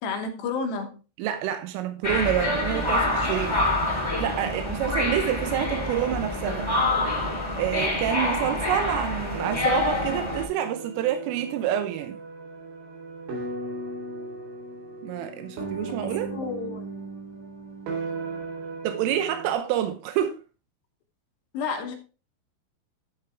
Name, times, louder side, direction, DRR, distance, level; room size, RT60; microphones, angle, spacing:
voice 1, 0.0-1.0 16.0-16.9 21.5-22.0, left 4 dB, 70° left, 2.9 m, -31 dB
voice 2, 1.2-6.7 7.6-12.2 15.0-16.4 18.8-20.4, right 11 dB, 85° right, 3.5 m, -28 dB
sound 1, 2.0-10.4, left 2 dB, 20° left, 0.8 m, -26 dB
sound 2, 9.3-19.5, right 3 dB, 60° right, 5.6 m, -37 dB
12.0 x 6.8 x 3.5 m
omnidirectional pair, 5.7 m